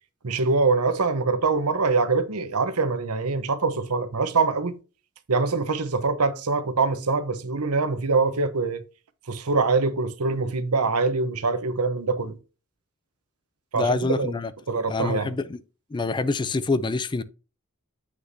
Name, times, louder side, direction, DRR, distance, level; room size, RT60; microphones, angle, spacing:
voice 1, 0.2-4.8 5.3-8.8 9.3-12.3 13.7-14.3 14.7-15.3, right 4 dB, 90° right, 0.9 m, -24 dB
voice 2, 13.7-14.5 14.9-15.6 15.9-17.2, left 3 dB, 20° left, 0.4 m, -26 dB
7.6 x 6.4 x 2.7 m
head